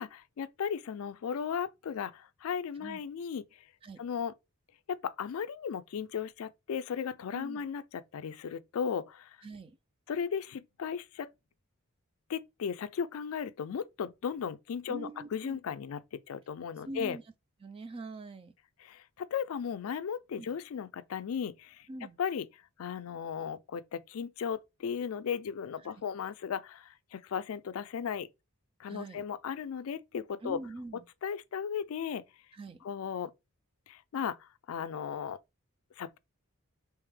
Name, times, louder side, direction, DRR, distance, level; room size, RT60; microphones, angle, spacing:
voice 1, 0.0-3.6 4.0-4.3 4.9-7.8 8.1-9.4 10.1-11.3 12.3-17.2 18.8-21.9 22.2-22.5 22.8-28.3 28.8-30.6 31.2-32.2 32.8-33.3 33.9-35.4 36.0-36.2, left 7 dB, 75° left, 0.4 m, -36 dB
voice 2, 7.3-7.6 9.4-9.8 14.9-15.6 16.9-17.2 17.6-18.5 20.4-20.5 21.9-22.2 25.8-25.9 28.8-29.2 30.4-31.1 32.5-32.9, right 2 dB, 25° right, 0.3 m, -43 dB
3.4 x 3.0 x 3.3 m
head